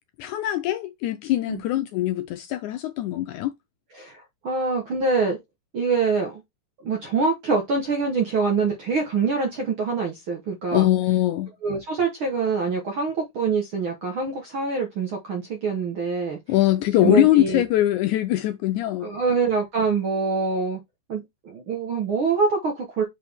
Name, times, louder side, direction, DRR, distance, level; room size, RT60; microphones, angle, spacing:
voice 1, 0.2-3.5 10.7-11.5 16.5-19.1, left 14 dB, 80° left, 1.7 m, -22 dB
voice 2, 3.9-5.4 5.7-6.4 6.8-10.9 11.6-16.4 17.0-17.6 19.0-20.8 21.1-23.0, right 4 dB, 60° right, 1.4 m, -25 dB
6.1 x 5.0 x 3.4 m
omnidirectional pair, 3.9 m